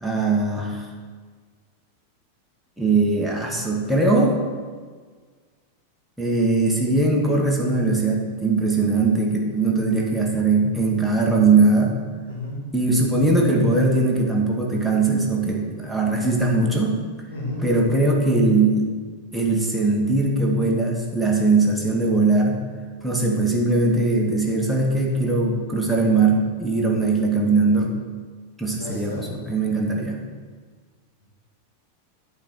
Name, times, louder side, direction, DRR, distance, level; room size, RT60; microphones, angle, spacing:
voice 1, 0.0-0.9 2.8-4.3 6.2-11.9 12.7-17.0 17.6-18.9 19.3-22.6 23.0-27.9 28.6-30.2, right 3 dB, ahead, -2 dB, 1.2 m, -20 dB
voice 2, 12.3-12.6 17.3-17.6 28.8-29.2, left 2 dB, 70° left, -3 dB, 2.3 m, -32 dB
8.4 x 3.8 x 6.0 m, 1.6 s
figure-of-eight pair, 90°, 0 cm